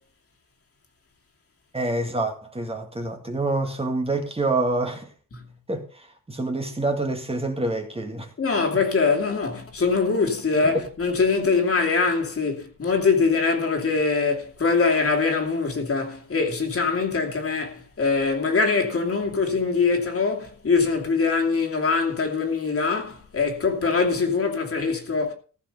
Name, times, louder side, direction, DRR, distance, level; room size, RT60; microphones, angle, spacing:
voice 1, 1.7-5.1 5.7-8.3 10.6-10.8, right 2 dB, 15° right, 2.0 m, -27 dB
voice 2, 8.4-25.3, left 4 dB, 40° left, 2.7 m, -23 dB
15.0 x 5.7 x 6.8 m
wide cardioid pair, 125°, 34 cm